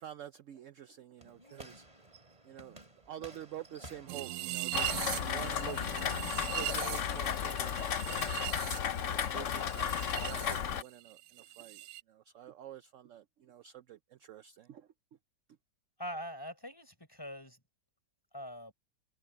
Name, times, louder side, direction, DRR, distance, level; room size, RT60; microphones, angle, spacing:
voice 1, 0.0-1.8 2.4-6.0 6.3-8.4 8.9-11.8 12.1-14.9, right 11 dB, 70° right, 0.7 m, -48 dB
sound 1, 1.2-7.2, right 1 dB, 20° right, 2.7 m, -55 dB
sound 2, 4.1-10.6 10.9-12.0, right 15 dB, 90° right, 1.3 m, -40 dB
Rain, 4.7-10.8, left 8 dB, 55° left, 1.0 m, -34 dB
voice 2, 16.0-17.6 18.3-18.7, equal, 10° left, 4.7 m, -43 dB
omnidirectional pair, 1.9 m